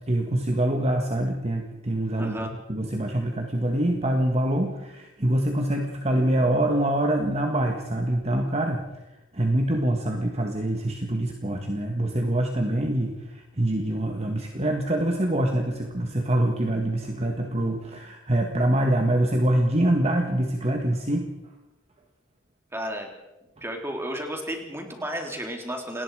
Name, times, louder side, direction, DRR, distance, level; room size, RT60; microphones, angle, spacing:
voice 1, 0.0-8.8 9.3-21.3, right 1 dB, 30° right, 3 dB, 1.7 m, -25 dB
voice 2, 2.2-2.5 22.7-23.1 23.6-26.0, equal, 10° right, 2 dB, 3.5 m, -32 dB
28.5 x 19.0 x 4.9 m, 1.0 s
head